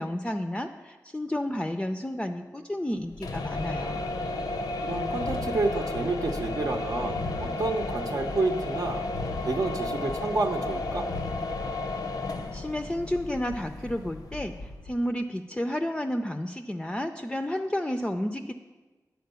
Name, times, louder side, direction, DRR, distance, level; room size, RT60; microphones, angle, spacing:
voice 1, 0.0-4.1 12.5-18.5, left 1 dB, 15° left, 5 dB, 0.4 m, -31 dB
sound 1, 3.1-15.0, left 2 dB, 90° left, 0.6 m, -33 dB
voice 2, 4.8-9.1 9.4-11.1, right 3 dB, 70° right, 2 dB, 0.7 m, -29 dB
9.3 x 4.4 x 6.8 m, 1.3 s
wide cardioid pair, 60°, 7 cm